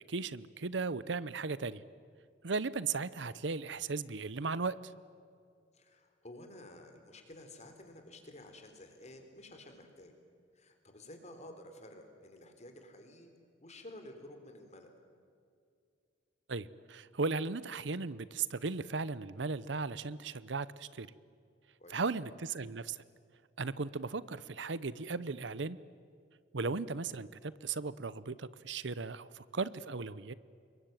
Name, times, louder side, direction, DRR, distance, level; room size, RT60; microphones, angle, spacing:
voice 1, 0.1-1.8 2.4-4.9 16.5-21.1 21.9-23.0 23.6-25.8 26.5-30.3, right 4 dB, 70° right, 17 dB, 0.8 m, -36 dB
voice 2, 5.7-10.1 10.5-13.3 13.6-14.9 21.8-22.0, left 1 dB, 40° left, 6 dB, 3.9 m, -52 dB
26.5 x 22.5 x 9.1 m, 2.4 s
head